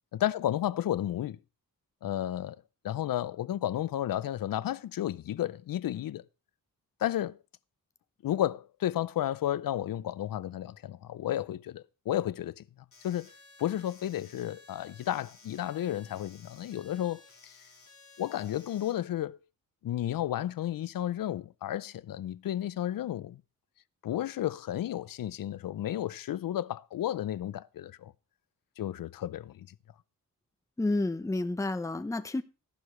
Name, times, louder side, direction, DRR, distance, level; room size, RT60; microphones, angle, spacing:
voice 1, 0.1-1.4 2.0-2.6 2.8-6.2 7.0-7.4 8.2-12.6 13.0-13.3 13.6-17.5 18.2-19.4 19.8-23.4 24.0-28.1 28.8-29.7, left 12 dB, 75° left, 0.6 m, -32 dB
sound 1, 12.9-18.9, left 3 dB, 40° left, 5.5 m, -56 dB
voice 2, 30.8-32.4, left 2 dB, 10° left, 0.6 m, -30 dB
14.5 x 11.5 x 3.2 m
wide cardioid pair, 115°, 34 cm